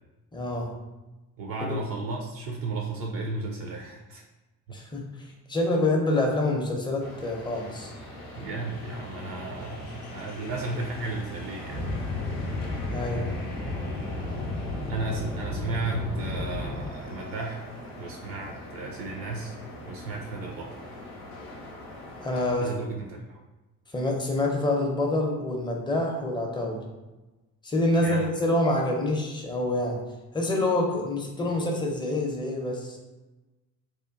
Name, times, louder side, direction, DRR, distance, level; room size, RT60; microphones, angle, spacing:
voice 1, 0.3-0.7 1.7-1.8 4.7-5.0 5.5-7.9 12.9-13.2 22.2-22.7 23.9-26.8 27.6-30.0 30.3-33.0, left 2 dB, 10° left, 0 dB, 0.5 m, -26 dB
voice 2, 1.4-4.2 4.7-4.8 8.3-11.9 14.9-17.7 18.0-19.6 19.8-20.8 22.6-23.4 28.0-28.3, right 2 dB, 50° right, 0 dB, 0.5 m, -34 dB
sound 1, 7.0-22.6, left 1 dB, 85° left, 0.5 m, -41 dB
sound 2, 11.7-16.8, left 2 dB, 85° right, 0.8 m, -33 dB
2.9 x 2.1 x 2.3 m, 1.1 s
figure-of-eight pair, 45°, 44 cm